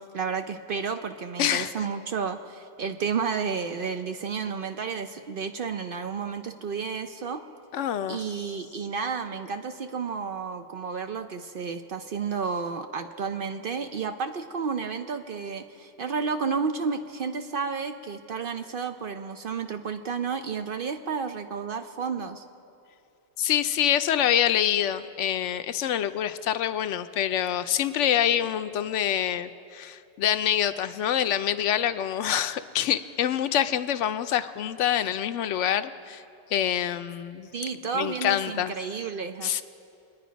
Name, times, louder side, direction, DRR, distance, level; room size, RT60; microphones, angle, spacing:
voice 1, 0.0-7.4 8.1-22.4 37.5-39.6, right 5 dB, 55° right, 7 dB, 0.7 m, -31 dB
voice 2, 1.4-1.7 7.7-8.2 23.4-36.2 36.5-37.5 37.9-38.7 39.4-39.6, left 10 dB, 75° left, 11 dB, 0.9 m, -26 dB
24.0 x 10.0 x 5.1 m, 2.6 s
omnidirectional pair, 1.3 m